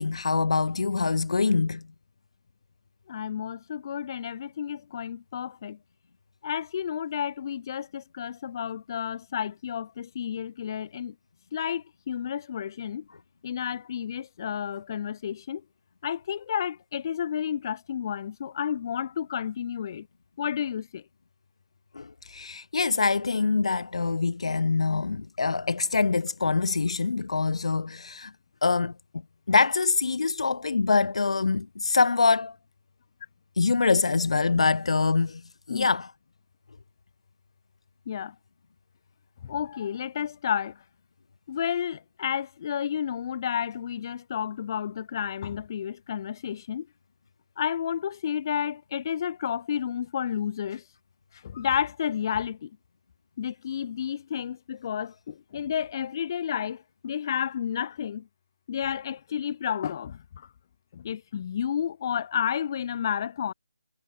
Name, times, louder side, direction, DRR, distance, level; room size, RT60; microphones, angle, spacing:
voice 1, 0.0-1.8 21.9-28.3 28.6-28.9 29.5-32.5 33.6-35.4 35.7-36.1, left 4 dB, 70° left, 1.4 m, -24 dB
voice 2, 3.1-5.8 6.4-11.1 11.5-13.0 13.4-15.6 16.0-20.1 20.4-21.0 35.7-35.9 38.1-38.4 39.4-40.8 41.5-46.9 47.6-50.8 51.4-52.7 53.4-58.3 58.7-60.5 60.9-63.5, left 8 dB, 35° left, 5.4 m, -31 dB
figure-of-eight pair, 160°, 3 cm